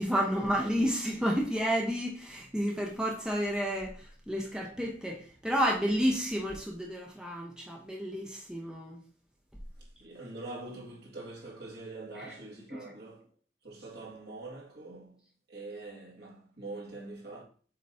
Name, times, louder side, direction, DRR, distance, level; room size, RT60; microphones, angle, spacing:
voice 1, 0.0-3.9 4.3-9.0 12.2-12.3, equal, 5° right, 0.9 m, -30 dB
voice 2, 9.8-13.3 13.6-15.2 15.5-17.4, right 2 dB, 65° right, 2.1 m, -44 dB
7.5 x 3.1 x 4.2 m
head